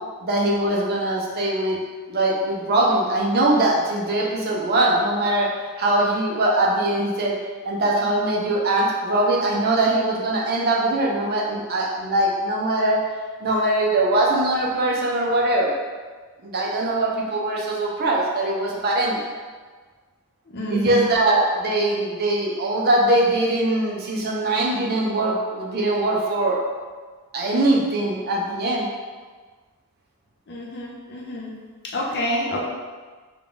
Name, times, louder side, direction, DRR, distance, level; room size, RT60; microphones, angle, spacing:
voice 1, 0.2-1.8 2.1-5.5 5.8-7.3 7.6-13.0 13.4-15.7 16.4-19.2 20.7-26.6 27.3-28.9, right 1 dB, 45° right, -2 dB, 0.6 m, -21 dB
voice 2, 20.5-21.1 30.5-31.5 31.9-32.6, equal, 50° left, -2 dB, 0.6 m, -27 dB
3.6 x 2.3 x 3.8 m, 1.4 s
head